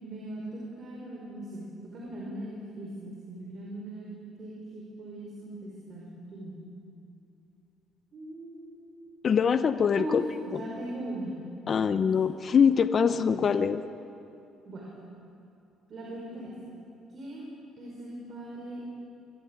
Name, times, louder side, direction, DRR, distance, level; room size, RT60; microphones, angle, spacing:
voice 1, 0.0-4.1 4.4-6.6 8.1-8.9 9.9-11.3 14.6-14.9 15.9-16.5 17.1-17.5 17.8-18.9, right 1 dB, 45° right, -3 dB, 5.2 m, -39 dB
voice 2, 9.2-10.2 11.7-13.8, left 6 dB, 40° left, 11 dB, 0.8 m, -23 dB
24.0 x 14.5 x 9.1 m, 2.7 s
cardioid pair, 110°, 0 cm